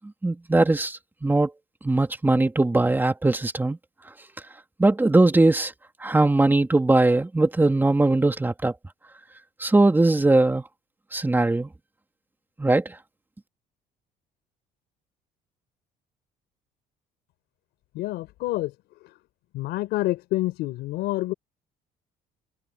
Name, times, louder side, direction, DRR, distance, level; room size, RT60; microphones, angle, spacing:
voice 1, 0.2-1.5 1.8-3.8 4.8-5.7 6.0-8.7 9.6-10.6 11.1-11.7 12.6-12.8, right 2 dB, 10° right, 2.4 m, -20 dB
voice 2, 17.9-18.7 19.5-21.3, left 17 dB, 90° left, 4.6 m, -27 dB
cardioid pair, 110°, 17 cm